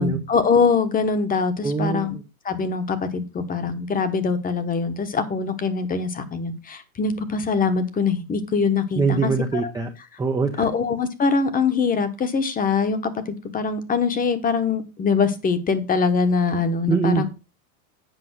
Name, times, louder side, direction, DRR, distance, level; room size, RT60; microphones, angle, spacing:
voice 1, 0.0-2.1 2.4-9.7 10.6-17.3, left 5 dB, 20° left, 11 dB, 1.0 m, -23 dB
voice 2, 1.6-2.1 9.0-9.9 10.2-10.6 16.9-17.3, right 4 dB, 10° right, 3 dB, 0.6 m, -23 dB
8.1 x 5.3 x 6.1 m, 0.29 s
supercardioid pair, 140°, 48 cm